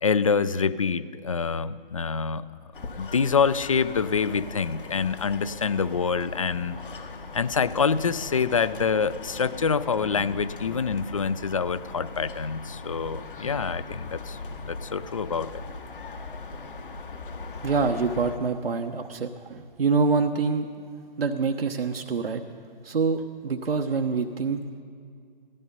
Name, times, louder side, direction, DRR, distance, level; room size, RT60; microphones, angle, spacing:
voice 1, 0.0-2.5 3.0-6.8 7.3-14.4 14.7-15.6, left 5 dB, 35° left, 16 dB, 0.4 m, -26 dB
sound 1, 2.7-18.4, left 3 dB, 65° left, 1.5 m, -39 dB
voice 2, 17.6-20.8 21.2-22.4 22.8-24.6, right 4 dB, 80° right, 2 dB, 1.0 m, -26 dB
16.0 x 14.0 x 5.4 m, 2.3 s
figure-of-eight pair, 155°, 29 cm